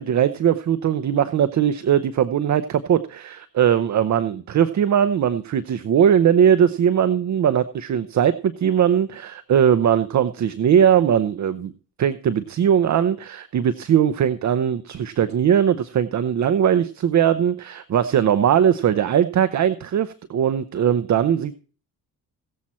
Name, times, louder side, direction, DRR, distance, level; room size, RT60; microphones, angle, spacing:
voice 1, 0.0-11.7 12.0-21.6, right 9 dB, 45° right, 12 dB, 0.7 m, -20 dB
17.0 x 7.5 x 4.3 m, 0.40 s
cardioid pair, 120°, 40 cm